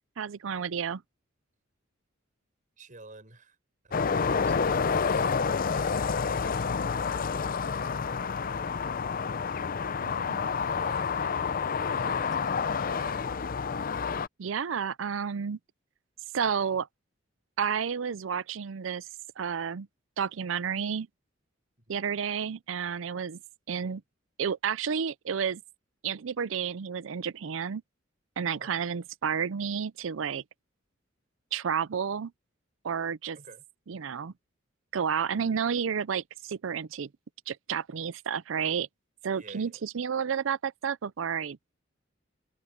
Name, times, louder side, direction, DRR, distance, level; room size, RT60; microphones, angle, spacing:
voice 1, 0.2-1.0 10.0-10.4 14.4-15.6 16.3-16.8 17.6-19.1 19.4-19.9 20.2-21.1 21.9-23.4 23.7-24.0 24.4-25.6 26.0-27.8 28.4-30.4 31.5-32.3 32.8-33.4 33.9-34.3 34.9-37.1 37.5-38.9 39.2-41.6, right 7 dB, 80° right, 0.5 m, -31 dB
voice 2, 2.8-3.6 3.8-6.0 10.8-11.7 12.0-13.2 16.4-16.8 21.9-22.0 28.6-28.8 33.3-33.6 39.3-39.8, right 3 dB, 40° right, 6.8 m, -51 dB
sound 1, 3.9-14.3, left 5 dB, 45° left, 0.5 m, -29 dB
open air
head